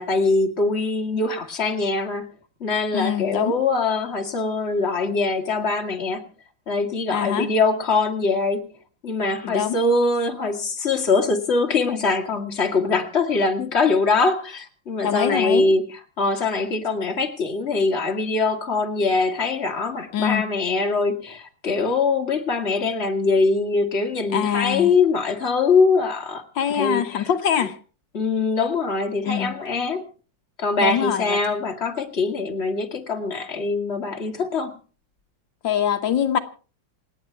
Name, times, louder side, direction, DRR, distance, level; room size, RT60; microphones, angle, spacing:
voice 1, 0.0-2.3 2.6-6.2 6.7-8.7 9.0-15.8 16.2-26.4 26.8-27.2 28.1-30.0 30.6-34.7, left 3 dB, 35° left, 2.2 m, -22 dB
voice 2, 2.9-3.5 7.1-7.5 9.4-9.8 15.0-15.6 20.1-20.4 24.3-24.9 26.6-27.8 29.2-29.6 30.8-31.4 35.6-36.4, left 9 dB, 80° left, 1.8 m, -24 dB
28.0 x 9.9 x 4.5 m
omnidirectional pair, 2.0 m